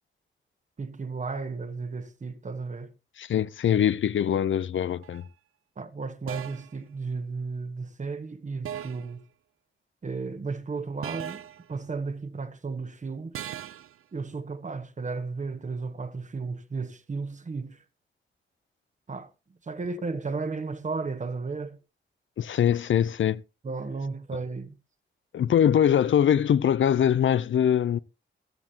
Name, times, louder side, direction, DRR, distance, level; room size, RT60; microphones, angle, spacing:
voice 1, 0.8-2.9 5.8-9.2 10.0-11.4 11.7-13.4 14.1-17.8 19.1-19.3 19.6-21.8 23.6-24.8, right 4 dB, 35° right, 1.3 m, -34 dB
voice 2, 3.2-5.2 22.4-23.4 25.3-28.0, left 9 dB, 65° left, 0.5 m, -23 dB
sound 1, 5.0-5.3 6.3-6.8 8.7-9.2 11.0-11.7 13.3-13.9, right 10 dB, 90° right, 0.5 m, -38 dB
14.5 x 13.0 x 2.8 m
wide cardioid pair, 145°, 21 cm